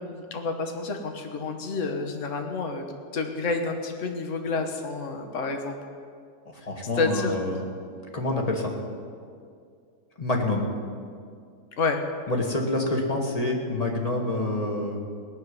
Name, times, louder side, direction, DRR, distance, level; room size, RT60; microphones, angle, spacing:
voice 1, 0.0-2.9 3.1-5.8 7.0-7.4 11.8-12.0, left 4 dB, 50° left, 5 dB, 1.5 m, -29 dB
voice 2, 6.6-7.7 8.1-8.7 10.2-10.7 12.3-15.1, left 2 dB, 25° left, 1 dB, 1.9 m, -27 dB
18.5 x 7.2 x 9.6 m, 2.3 s
omnidirectional pair, 1.7 m